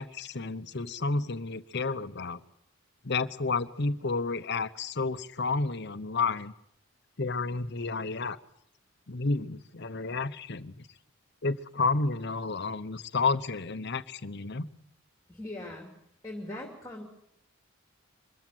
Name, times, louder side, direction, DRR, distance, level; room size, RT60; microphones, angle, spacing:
voice 1, 0.0-2.4 3.0-6.5 7.2-8.4 9.1-10.9 11.4-14.7, left 4 dB, 50° left, 12 dB, 0.9 m, -31 dB
voice 2, 15.3-15.9 16.2-17.0, left 1 dB, 15° left, 2 dB, 2.8 m, -40 dB
24.5 x 14.0 x 9.1 m, 0.77 s
head